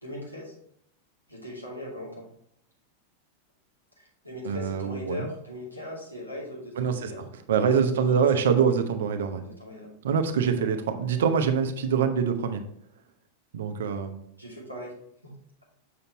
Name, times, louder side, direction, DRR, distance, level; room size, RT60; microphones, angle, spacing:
voice 1, 0.0-0.5 1.3-2.3 4.0-7.2 7.6-8.8 9.4-9.9 10.6-10.7 14.4-14.9 15.2-15.3, left 1 dB, 90° left, -6 dB, 2.6 m, -40 dB
voice 2, 4.4-5.3 6.8-9.4 10.0-12.6 13.5-14.2, right 6 dB, 60° right, 7 dB, 0.8 m, -25 dB
6.8 x 6.7 x 2.9 m, 0.72 s
figure-of-eight pair, 90°, 0 cm